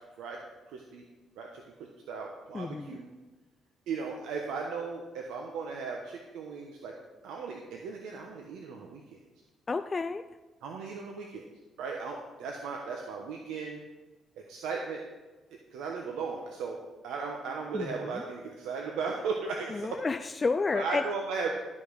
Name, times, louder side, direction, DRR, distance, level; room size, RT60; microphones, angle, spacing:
voice 1, 0.7-1.0 1.4-1.5 2.1-3.1 3.9-6.9 7.2-9.2 10.6-11.4 11.8-13.8 14.5-15.0 15.7-20.0 20.7-21.6, right 5 dB, 90° right, 1 dB, 1.1 m, -36 dB
voice 2, 2.5-3.0 9.7-10.2 17.7-18.2 19.7-21.1, left 4 dB, 30° left, 9 dB, 0.4 m, -31 dB
12.5 x 5.5 x 6.5 m, 1.2 s
cardioid pair, 90°, 0 cm